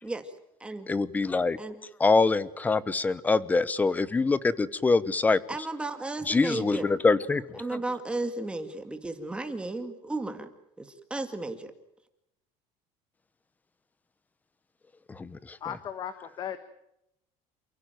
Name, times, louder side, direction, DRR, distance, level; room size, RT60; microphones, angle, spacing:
voice 1, 0.9-1.6 2.0-5.4 6.3-7.8 15.1-15.6, left 3 dB, 10° left, 17 dB, 0.9 m, -25 dB
voice 2, 5.5-6.9 7.6-10.5 10.8-11.7, right 2 dB, 5° right, 7 dB, 2.0 m, -34 dB
voice 3, 15.6-16.6, left 9 dB, 30° left, 11 dB, 1.4 m, -36 dB
29.0 x 16.5 x 9.2 m, 0.82 s
cardioid pair, 175°, 14 cm